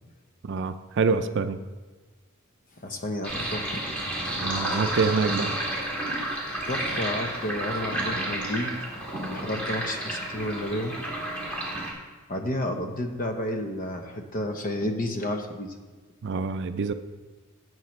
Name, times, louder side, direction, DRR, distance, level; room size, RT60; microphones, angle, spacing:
voice 1, 0.4-1.6 4.4-5.5 16.2-16.9, right 4 dB, 55° right, 10 dB, 0.4 m, -26 dB
voice 2, 2.8-3.8 6.7-8.8 9.3-11.0 12.3-15.7, left 1 dB, 40° left, 5 dB, 0.9 m, -31 dB
Sink (filling or washing), 3.2-11.9, right 1 dB, 5° left, 1.8 m, -31 dB
11.5 x 8.0 x 3.2 m, 1.4 s
head